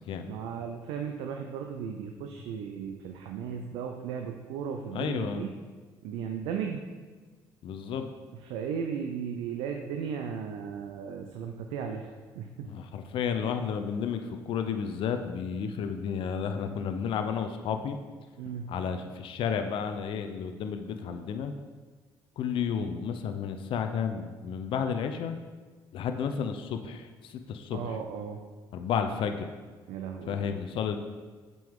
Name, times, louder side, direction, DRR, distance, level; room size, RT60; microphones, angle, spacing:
voice 1, 0.3-5.5 6.0-6.8 8.4-12.1 12.3-12.7 18.4-18.7 27.7-28.4 29.9-30.4, right 7 dB, 85° right, 4 dB, 0.5 m, -36 dB
voice 2, 4.9-5.4 7.6-8.1 12.7-18.0 18.7-21.5 22.4-25.4 25.9-27.8 28.7-29.5 30.3-31.0, left 7 dB, 65° left, 7 dB, 0.6 m, -32 dB
7.5 x 5.3 x 3.7 m, 1.4 s
supercardioid pair, 65°, 9 cm